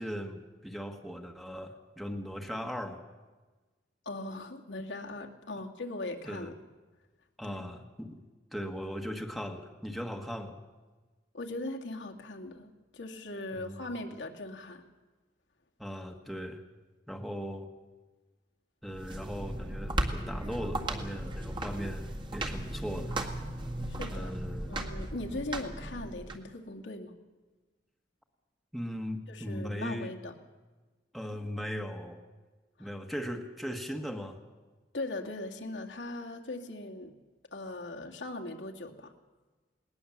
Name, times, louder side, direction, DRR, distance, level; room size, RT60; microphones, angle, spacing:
voice 1, 0.0-3.0 6.2-6.5 7.4-8.2 8.5-10.6 13.5-13.8 15.8-16.6 17.1-17.7 18.8-23.2 24.1-24.7 28.7-30.1 31.1-32.2 32.8-34.4, equal, ahead, 4 dB, 1.5 m, -38 dB
voice 2, 4.1-6.5 7.4-7.6 11.3-14.8 23.9-24.3 24.7-27.1 29.3-30.3 32.8-32.9 34.9-37.1 37.5-39.1, left 2 dB, 75° left, 1 dB, 2.2 m, -39 dB
sound 1, 18.9-26.4, right 1 dB, 25° right, 1.9 m, -36 dB
20.0 x 19.5 x 7.3 m, 1.3 s
head